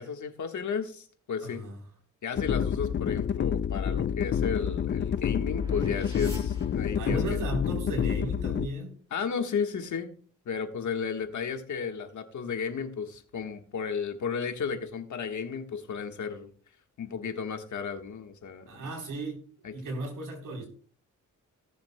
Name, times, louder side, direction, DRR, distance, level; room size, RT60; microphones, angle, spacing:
voice 1, 0.0-1.6 2.2-7.2 9.1-10.1 10.4-16.5 17.0-18.8 19.6-19.7, left 6 dB, 65° left, 5 dB, 1.5 m, -33 dB
voice 2, 1.4-1.8 6.9-8.9 18.7-19.4 19.7-20.7, right 2 dB, 85° right, 2 dB, 3.8 m, -35 dB
sound 1, 2.3-8.7, left 8 dB, 35° left, 0.4 m, -28 dB
sound 2, 4.0-7.4, equal, 15° right, 5.3 m, -51 dB
17.5 x 7.1 x 2.2 m, 0.43 s
cardioid pair, 95°, 32 cm